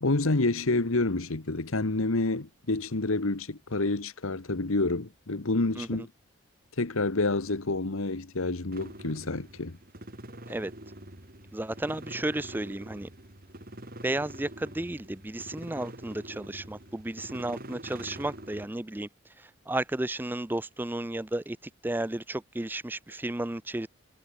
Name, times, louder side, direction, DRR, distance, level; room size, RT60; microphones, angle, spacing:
voice 1, 0.0-6.1 6.8-9.8, left 2 dB, 70° left, 1.3 m, -28 dB
sound 1, 8.7-18.7, right 1 dB, 40° right, 3.2 m, -45 dB
voice 2, 11.5-13.1 14.0-19.1 19.4-21.6 21.8-23.9, right 1 dB, 10° right, 0.4 m, -33 dB
head